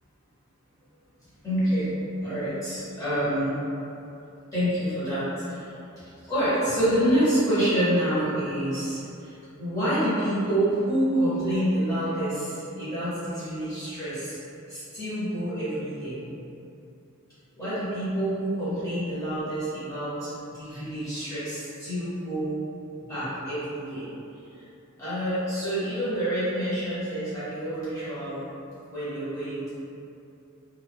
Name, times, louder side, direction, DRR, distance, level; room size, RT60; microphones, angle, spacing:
voice 1, 1.4-1.9 2.2-3.5 4.5-5.8 6.2-14.4 14.7-16.2 17.6-22.6 23.0-24.1 24.5-24.6 25.0-28.5 28.9-29.7, right 1 dB, 15° left, -14 dB, 1.3 m, -27 dB
2.7 x 2.4 x 3.5 m, 2.8 s
head